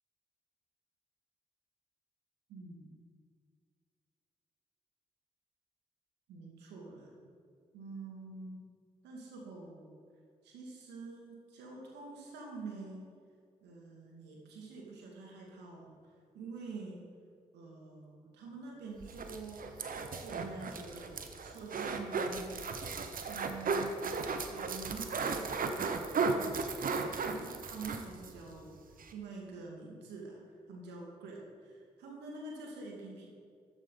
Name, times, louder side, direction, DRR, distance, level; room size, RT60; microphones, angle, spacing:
voice 1, 2.5-2.9 6.3-7.1 7.7-8.6 9.0-9.9 10.4-13.1 13.6-15.9 16.3-17.0 17.5-19.7 20.2-22.7 23.3-24.0 24.5-28.7 29.1-30.4 30.7-33.3, right 3 dB, 80° right, -2 dB, 2.4 m, -47 dB
sound 1, 19.0-28.4 28.7-28.8 29.0-29.1, right 4 dB, 55° right, 1.1 m, -35 dB
13.0 x 8.9 x 4.0 m, 2.2 s
hypercardioid pair, 40°, 17 cm